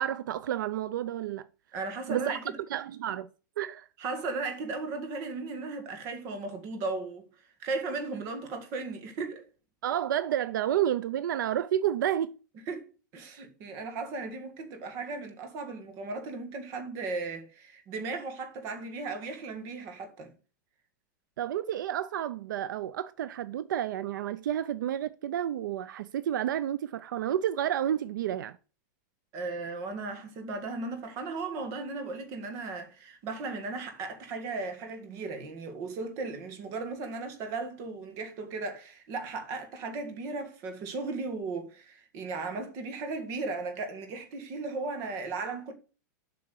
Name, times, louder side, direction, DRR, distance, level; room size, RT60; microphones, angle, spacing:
voice 1, 0.0-1.5 2.1-2.4 2.7-3.3 3.6-3.9 9.8-12.3 21.4-28.6, right 11 dB, 75° right, 0.6 m, -30 dB
voice 2, 1.7-2.6 4.0-7.3 7.6-9.4 12.6-12.9 13.1-20.3 29.3-45.7, right 3 dB, 30° right, 1.8 m, -36 dB
7.7 x 5.8 x 6.4 m
supercardioid pair, 175°, 10 cm